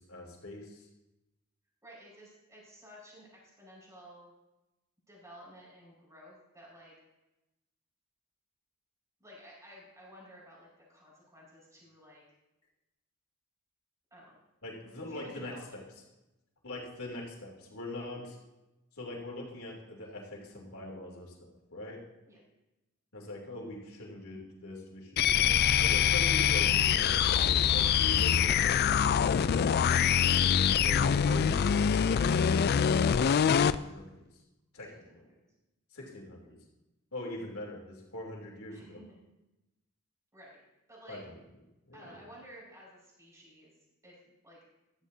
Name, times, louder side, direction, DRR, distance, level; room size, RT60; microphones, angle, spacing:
voice 1, 0.1-0.8 14.6-15.8 16.6-18.4 19.0-22.0 23.1-30.2 30.8-34.1 34.7-35.2 35.9-36.6 37.1-39.0 41.1-41.3 41.9-42.2, left 1 dB, 85° left, -2 dB, 3.1 m, -42 dB
voice 2, 1.8-4.3 5.1-6.9 9.2-12.2 14.1-14.3 15.1-15.8 22.3-22.4 31.0-31.3 34.8-35.4 38.7-39.2 40.3-40.6 40.9-41.2 41.9-43.7 44.0-44.6, equal, 15° right, -5 dB, 5.2 m, -53 dB
sound 1, 25.2-33.8, left 8 dB, 50° left, 0.3 m, -25 dB
14.5 x 13.0 x 2.8 m, 0.97 s
head